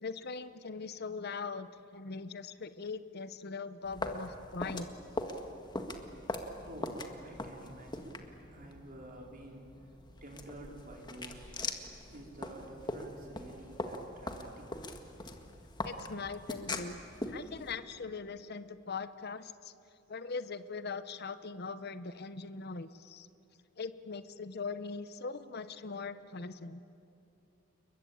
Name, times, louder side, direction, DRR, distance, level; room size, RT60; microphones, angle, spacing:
voice 1, 0.0-4.9 15.8-17.0 17.3-19.7 20.1-23.3 23.8-26.8, left 4 dB, 55° left, 12 dB, 0.9 m, -41 dB
sound 1, 3.8-17.8, left 2 dB, 20° left, 1.8 m, -42 dB
voice 2, 6.5-8.2 8.5-9.9 10.2-11.6 12.1-14.8, right 1 dB, 45° right, 0 dB, 4.4 m, -50 dB
29.5 x 22.0 x 8.7 m, 2.8 s
head